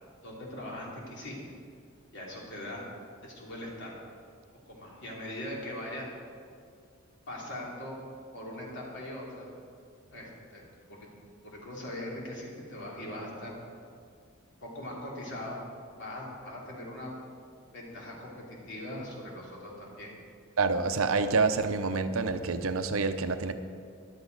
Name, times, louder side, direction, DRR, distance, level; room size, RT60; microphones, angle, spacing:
voice 1, 0.2-1.4 2.1-2.8 3.2-3.9 4.7-6.0 7.3-8.0 8.3-9.5 10.1-10.6 10.9-11.1 11.4-13.6 14.6-15.6 16.0-17.2 17.7-20.1, left 1 dB, 60° left, -3 dB, 3.0 m, -40 dB
voice 2, 20.6-23.5, right 4 dB, 75° right, 9 dB, 0.7 m, -27 dB
14.5 x 11.5 x 4.0 m, 2.3 s
head